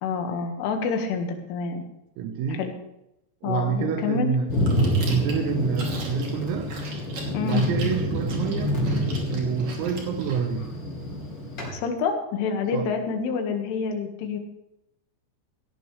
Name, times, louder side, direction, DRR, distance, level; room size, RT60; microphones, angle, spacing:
voice 1, 0.0-1.8 2.5-2.7 3.4-4.3 7.3-7.7 11.7-14.4, left 5 dB, 70° left, 4 dB, 4.0 m, -27 dB
voice 2, 2.2-2.7 3.4-4.5 5.1-6.7 7.4-8.9 9.3-10.7 12.7-12.9, right 6 dB, 85° right, 5 dB, 3.9 m, -27 dB
Thunder, 4.5-11.7, equal, 25° left, 4.2 m, -28 dB
Chewing mastication, 4.5-10.4, right 3 dB, 40° right, 3.5 m, -41 dB
18.0 x 16.0 x 3.3 m, 0.86 s
omnidirectional pair, 6.0 m